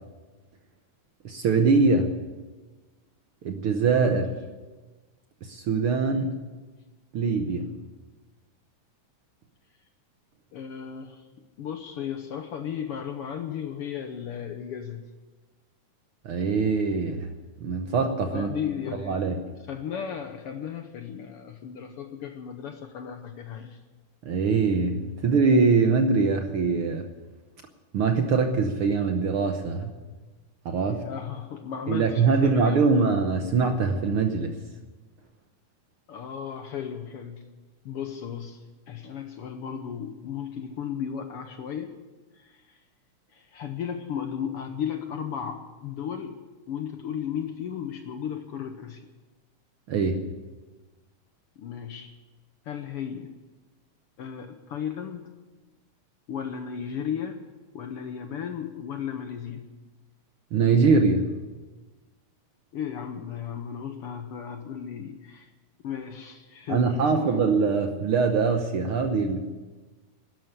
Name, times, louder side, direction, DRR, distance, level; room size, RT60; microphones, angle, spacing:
voice 1, 1.2-2.2 3.4-4.4 5.4-6.4 7.1-7.7 16.2-17.3 17.6-18.5 19.1-19.4 24.2-27.1 27.9-30.0 30.6-31.0 31.9-34.6 49.9-50.3 60.5-61.3 66.7-69.4, right 4 dB, 65° right, 6 dB, 1.4 m, -23 dB
voice 2, 10.5-11.3 11.6-15.0 18.3-19.3 19.7-23.8 30.8-33.0 36.1-37.4 37.8-42.0 42.3-42.8 43.3-46.4 46.7-49.0 51.6-52.1 52.6-53.3 54.2-55.3 56.3-57.5 57.7-59.6 62.7-65.5 65.8-67.3, left 8 dB, 65° left, 7 dB, 1.5 m, -35 dB
12.5 x 11.0 x 9.6 m, 1.3 s
omnidirectional pair, 3.4 m